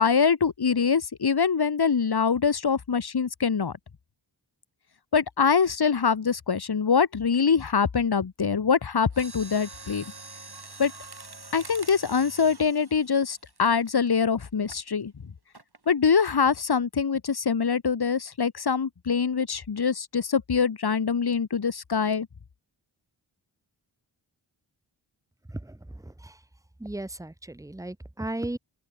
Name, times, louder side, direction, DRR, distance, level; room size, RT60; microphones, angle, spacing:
voice 1, 0.0-3.7 5.1-10.0 10.8-10.9 11.5-15.1 15.9-22.3, left 6 dB, 50° left, 1.1 m, -24 dB
Mechanisms, 9.1-14.1 14.7-14.9 15.5-15.9 16.2-16.3, right 3 dB, 50° right, 7.1 m, -45 dB
voice 2, 26.8-28.6, right 1 dB, 5° right, 0.7 m, -35 dB
open air
wide cardioid pair, 45°, 48 cm